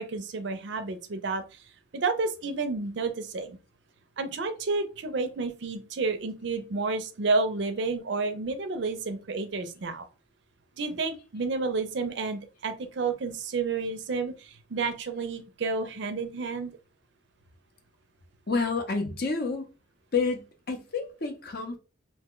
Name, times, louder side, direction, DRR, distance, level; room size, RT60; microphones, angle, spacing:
voice 1, 0.0-1.4 1.9-3.6 4.2-10.1 10.8-16.7, right 3 dB, 60° right, 0.5 m, -30 dB
voice 2, 18.5-19.7 20.1-21.8, left 4 dB, 50° left, 0.6 m, -29 dB
2.8 x 2.1 x 3.6 m
head